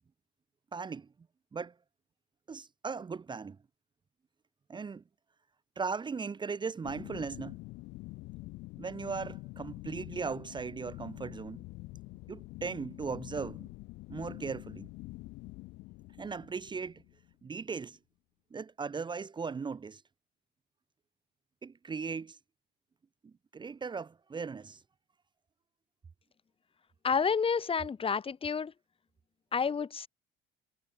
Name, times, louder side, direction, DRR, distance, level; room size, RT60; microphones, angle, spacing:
voice 1, 0.7-1.1 1.5-1.7 2.5-3.6 4.7-5.0 5.8-7.6 8.8-11.6 12.3-13.7 14.1-14.9 16.2-17.0 17.4-18.0 18.5-20.0 21.6-22.4 23.2-24.8, right 5 dB, 25° right, 1.0 m, -38 dB
sound 1, 6.8-17.5, left 21 dB, 80° left, 7.1 m, -46 dB
voice 2, 27.0-28.7 29.5-30.1, left 6 dB, 30° left, 2.0 m, -29 dB
supercardioid pair, 90°, 18 cm